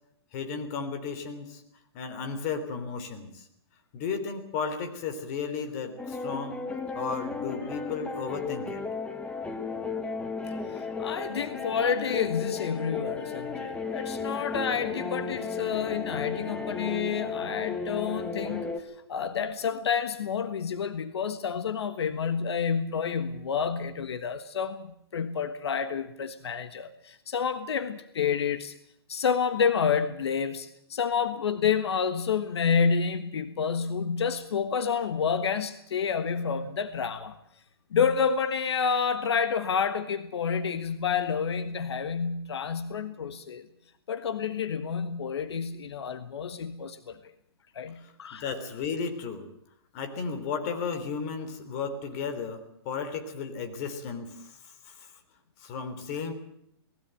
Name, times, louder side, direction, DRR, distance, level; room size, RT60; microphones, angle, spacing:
voice 1, 0.3-1.6 1.9-3.5 3.9-6.6 6.9-8.8 48.0-49.5 49.9-52.6 52.8-55.1 55.6-56.3, left 5 dB, 40° left, 8 dB, 3.4 m, -34 dB
sound 1, 6.0-18.8, left 4 dB, 10° left, 1.5 m, -34 dB
voice 2, 10.7-28.7 29.1-37.4 37.9-43.7 44.1-47.2 47.7-48.4, left 6 dB, 85° left, 11 dB, 1.4 m, -29 dB
19.5 x 16.5 x 9.1 m, 0.73 s
hypercardioid pair, 150°, 14 cm